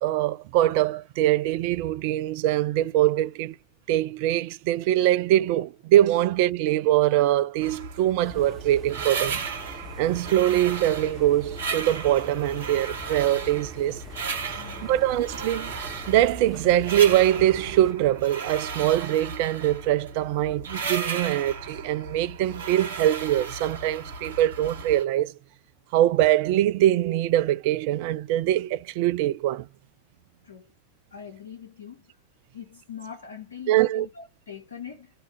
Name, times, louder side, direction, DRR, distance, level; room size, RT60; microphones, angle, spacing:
voice 1, 0.0-3.6 3.9-9.4 10.0-14.0 14.8-25.3 25.9-29.7 33.7-34.1, right 13 dB, 45° right, 0.3 m, -23 dB
sound 1, 7.6-25.0, right 5 dB, 65° right, 1.1 m, -35 dB
sound 2, 8.2-17.9, equal, 5° left, 1.1 m, -43 dB
voice 2, 14.6-15.0 30.4-30.7 31.1-32.0 32.5-35.1, left 7 dB, 70° left, 0.8 m, -42 dB
2.7 x 2.3 x 3.2 m
figure-of-eight pair, 90°, 0 cm